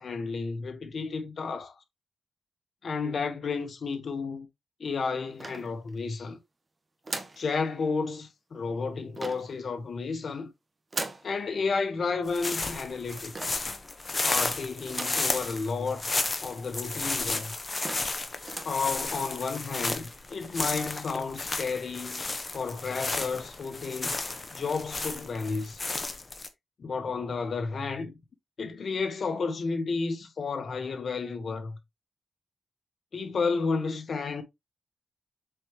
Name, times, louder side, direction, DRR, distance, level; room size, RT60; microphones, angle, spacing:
voice 1, 0.0-1.7 2.8-4.5 4.8-6.4 7.4-10.5 11.2-13.6 14.2-16.1 16.4-17.5 18.6-22.3 22.5-24.2 24.5-25.8 26.8-28.1 28.6-31.8 33.1-34.4, left 4 dB, 60° left, 1.5 m, -32 dB
sound 1, 5.4-6.1 7.0-7.5 9.1-9.6 10.9-11.3 13.3-13.7 14.9-15.3 15.8-15.9 16.1-16.2 17.0-17.1 17.5-17.6 17.8-18.2 18.4-18.8, right 2 dB, 30° right, 1.4 m, -38 dB
sound 2, 12.3-26.5, left 3 dB, 30° left, 1.3 m, -33 dB
7.4 x 4.6 x 3.2 m
cardioid pair, 95°, 0 cm